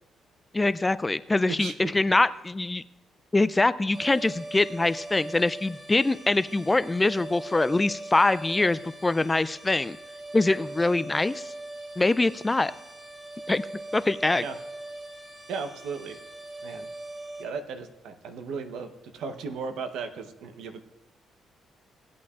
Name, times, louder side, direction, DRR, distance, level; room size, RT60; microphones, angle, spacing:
voice 1, 0.5-2.8 3.3-10.0 10.3-11.5 12.0-12.7 13.5-13.6 13.9-14.4, left 2 dB, 20° left, 15 dB, 0.3 m, -24 dB
voice 2, 1.5-1.8 14.4-14.6 15.5-16.2 16.6-16.9 17.4-20.8, right 5 dB, 80° right, 8 dB, 0.9 m, -36 dB
sound 1, 3.9-17.5, right 2 dB, 30° right, 2.0 m, -41 dB
17.5 x 8.5 x 2.4 m, 0.96 s
cardioid pair, 90°, 0 cm